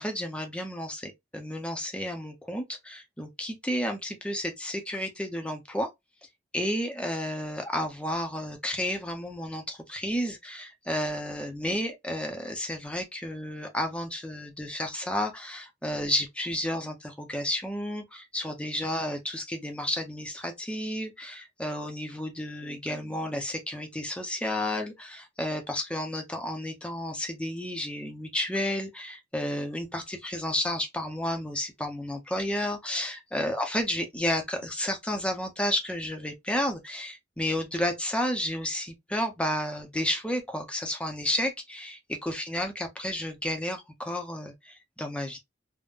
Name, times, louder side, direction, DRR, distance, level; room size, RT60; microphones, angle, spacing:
voice 1, 0.0-5.9 6.5-45.4, left 1 dB, 5° left, 0.6 m, -32 dB
3.6 x 2.1 x 2.5 m
head